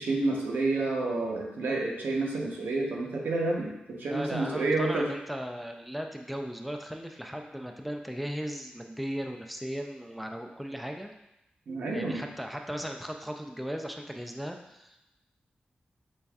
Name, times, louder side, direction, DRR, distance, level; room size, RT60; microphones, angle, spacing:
voice 1, 0.0-5.1 11.7-12.2, right 2 dB, 90° right, -1 dB, 0.9 m, -29 dB
voice 2, 4.1-11.1 11.9-15.1, equal, ahead, 3 dB, 0.3 m, -37 dB
5.3 x 4.2 x 2.4 m, 0.87 s
wide cardioid pair, 150°, 3 cm